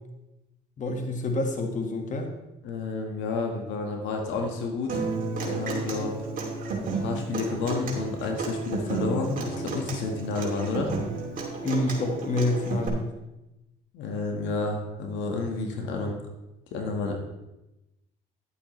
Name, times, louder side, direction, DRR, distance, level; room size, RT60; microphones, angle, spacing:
voice 1, 0.8-2.3 11.6-13.1, left 2 dB, 40° left, 4 dB, 1.6 m, -27 dB
voice 2, 2.6-5.0 5.4-6.2 7.0-10.9 13.9-16.2 16.7-17.1, left 3 dB, 80° left, 3 dB, 1.5 m, -30 dB
Human voice / Acoustic guitar, 4.9-12.9, right 4 dB, 45° right, 2.7 m, -32 dB
10.5 x 8.9 x 3.2 m, 0.97 s
supercardioid pair, 80°, 19 cm